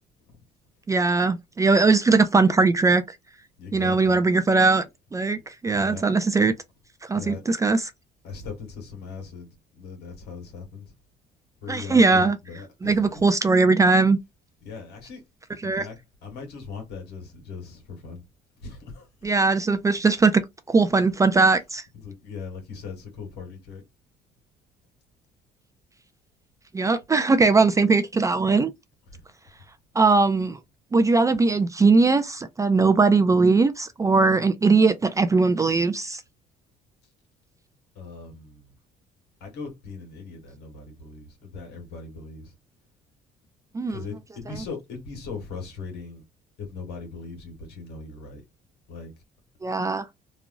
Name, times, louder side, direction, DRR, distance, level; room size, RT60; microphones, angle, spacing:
voice 1, 0.9-3.2 3.7-4.8 5.1-6.5 7.0-7.8 11.7-12.4 12.8-14.2 15.6-15.8 19.2-20.4 20.7-21.8 26.7-28.7 30.0-30.6 30.9-36.2 43.7-44.0 49.6-50.1, right 3 dB, 20° right, 0.3 m, -20 dB
voice 2, 3.6-4.2 5.7-6.1 7.1-7.4 8.2-10.9 11.6-13.2 14.6-15.2 15.6-18.2 18.6-19.1 21.9-23.8 29.1-29.2 37.9-38.8 39.4-42.6 43.9-46.2 46.6-48.4 48.9-49.1, left 4 dB, 80° left, 1.4 m, -39 dB
3.0 x 2.3 x 2.4 m
cardioid pair, 110°, 17 cm